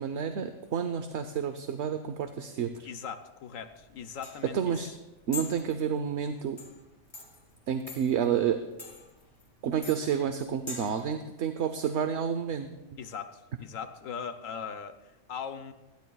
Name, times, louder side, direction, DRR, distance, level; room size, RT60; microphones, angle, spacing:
voice 1, 0.0-2.9 4.4-4.9 5.3-6.6 7.7-8.7 9.6-12.7, right 8 dB, 65° right, 8 dB, 0.9 m, -30 dB
voice 2, 2.8-4.9 13.0-15.7, left 7 dB, 90° left, 8 dB, 1.2 m, -40 dB
sound 1, 3.7-11.0, left 3 dB, 20° left, 2.0 m, -45 dB
25.0 x 10.5 x 2.3 m, 1.0 s
omnidirectional pair, 1.3 m